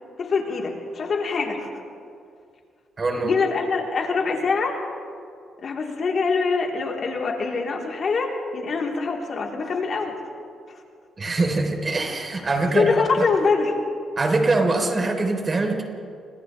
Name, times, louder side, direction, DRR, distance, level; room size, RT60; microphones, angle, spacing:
voice 1, 0.2-1.7 3.2-4.8 5.6-10.1 12.7-13.7, left 4 dB, 55° left, -1 dB, 3.9 m, -24 dB
voice 2, 3.0-3.3 11.2-13.2 14.2-15.8, right 3 dB, 35° right, 3 dB, 3.9 m, -23 dB
29.5 x 26.0 x 3.4 m, 2.3 s
cardioid pair, 80°, 0 cm